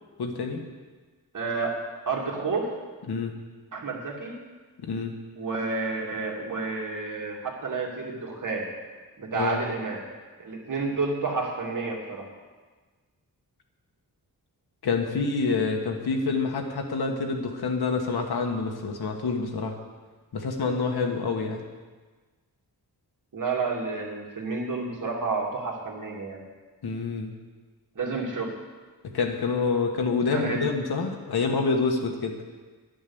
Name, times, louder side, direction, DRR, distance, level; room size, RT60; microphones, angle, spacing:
voice 1, 0.2-0.6 3.1-3.3 4.8-5.1 9.3-9.6 14.8-19.8 20.3-21.6 26.8-27.3 29.0-32.4, left 4 dB, 85° left, 3 dB, 1.7 m, -27 dB
voice 2, 1.3-1.8 2.1-2.7 3.7-4.4 5.4-8.7 9.2-10.0 10.4-12.3 23.3-26.4 28.0-28.5 30.3-30.6, right 4 dB, 55° right, -1 dB, 2.4 m, -30 dB
11.5 x 9.5 x 7.1 m, 1.4 s
wide cardioid pair, 180°, 37 cm